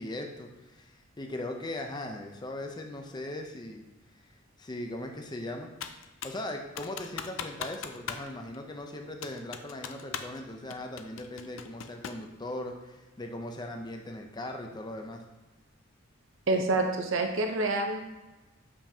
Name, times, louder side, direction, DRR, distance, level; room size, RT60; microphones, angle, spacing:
voice 1, 0.0-3.9 4.6-5.7 6.2-15.2, left 1 dB, 20° left, 3 dB, 0.6 m, -39 dB
Computer keyboard, 5.8-6.4 6.8-8.3 8.5-8.6 9.2-10.4 10.7-12.3, left 7 dB, 70° left, 0.5 m, -39 dB
voice 2, 16.5-18.0, right 2 dB, 70° right, 3 dB, 0.7 m, -27 dB
6.8 x 5.8 x 2.8 m, 1.1 s
head